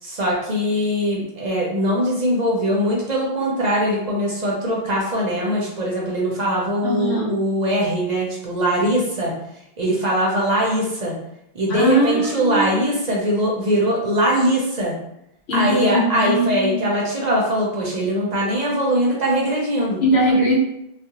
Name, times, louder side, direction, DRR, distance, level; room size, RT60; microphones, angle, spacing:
voice 1, 0.0-9.3 9.8-11.2 11.5-14.9 15.5-20.0, equal, 50° right, -3 dB, 0.6 m, -21 dB
voice 2, 6.8-7.3 11.7-12.8 15.5-16.8 20.0-20.5, equal, 85° left, -2 dB, 1.0 m, -20 dB
2.4 x 2.0 x 2.8 m, 0.82 s
omnidirectional pair, 1.0 m